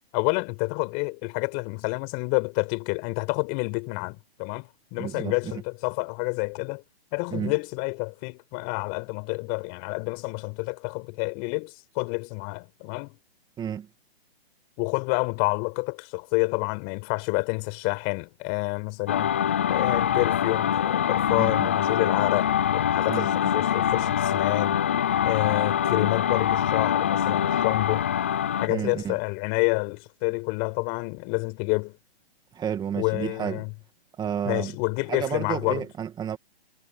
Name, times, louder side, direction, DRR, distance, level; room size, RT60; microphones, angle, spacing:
voice 1, 0.1-6.8 7.1-13.2 14.8-19.4 19.7-24.8 25.2-28.1 28.6-32.0 32.9-33.7 34.4-35.8, left 34 dB, 30° left, 5.0 m, -28 dB
voice 2, 5.0-5.6 7.3-7.5 13.6-13.9 21.4-21.7 23.1-23.3 28.7-29.1 32.5-33.6 34.2-34.7 35.1-36.4, right 8 dB, 15° right, 2.3 m, -31 dB
sound 1, 19.1-28.7, left 9 dB, 15° left, 0.3 m, -24 dB
hypercardioid pair, 140°, 32 cm